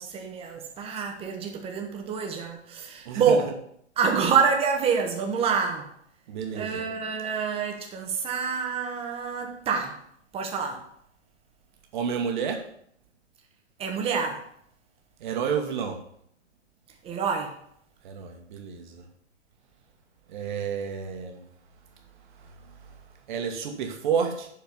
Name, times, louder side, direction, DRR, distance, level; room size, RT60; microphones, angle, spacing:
voice 1, 0.0-3.5 4.0-5.9 6.5-9.9 10.3-10.8 13.8-14.4 17.0-17.5, right 6 dB, 15° right, 1.2 m, -27 dB
voice 2, 3.0-3.5 6.3-6.9 11.9-12.7 15.2-16.0 18.0-19.1 20.3-21.4 23.3-24.5, right 7 dB, 40° right, 1.5 m, -30 dB
10.5 x 4.6 x 5.6 m
figure-of-eight pair, 125°, 35 cm